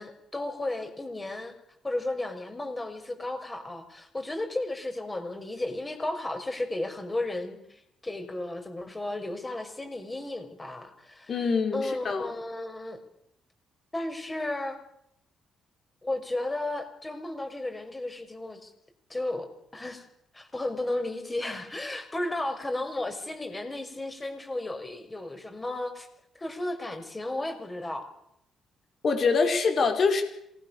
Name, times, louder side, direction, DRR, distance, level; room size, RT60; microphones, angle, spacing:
voice 1, 0.0-1.5 1.8-11.3 11.7-13.0 13.9-14.8 16.0-18.7 19.1-20.0 20.3-26.1 26.4-28.1, left 2 dB, 20° left, 6 dB, 6.0 m, -34 dB
voice 2, 11.3-12.3 29.0-30.2, left 4 dB, 50° left, 5 dB, 5.6 m, -24 dB
27.0 x 20.5 x 6.8 m, 0.75 s
cardioid pair, 90°, 0 cm